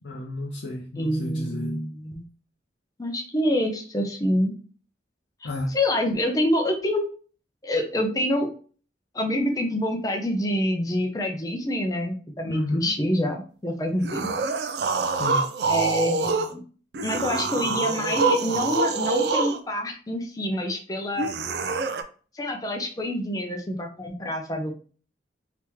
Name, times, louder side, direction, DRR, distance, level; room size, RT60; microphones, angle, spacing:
voice 1, 0.0-1.7 5.4-5.7 12.4-13.0 15.2-15.5, left 1 dB, 80° left, 0.6 m, -31 dB
voice 2, 1.0-2.2 3.0-4.5 5.7-7.0 7.6-8.5 9.1-14.3 15.7-16.6 17.0-21.3 22.3-24.7, left 1 dB, 20° left, 0.5 m, -26 dB
sound 1, 14.0-16.5 16.9-19.6 21.2-22.0, right 3 dB, 65° right, 0.4 m, -25 dB
3.5 x 2.9 x 2.9 m
head